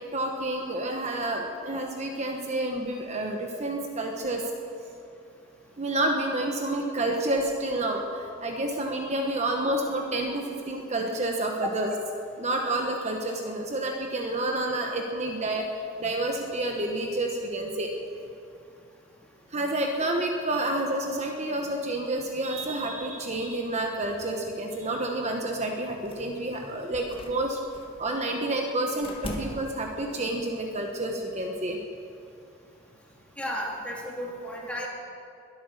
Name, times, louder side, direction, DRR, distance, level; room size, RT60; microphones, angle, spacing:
voice 1, 0.1-4.4 5.8-11.9 12.4-15.6 16.0-17.9 19.5-27.6 28.0-31.8, right 1 dB, 35° right, 2 dB, 1.2 m, -29 dB
sound 1, 26.0-26.5 26.9-28.0 29.0-29.9, left 1 dB, 30° left, 1.7 m, -39 dB
voice 2, 33.4-34.9, equal, 5° left, -3 dB, 2.5 m, -33 dB
22.0 x 8.7 x 6.6 m, 2.5 s
head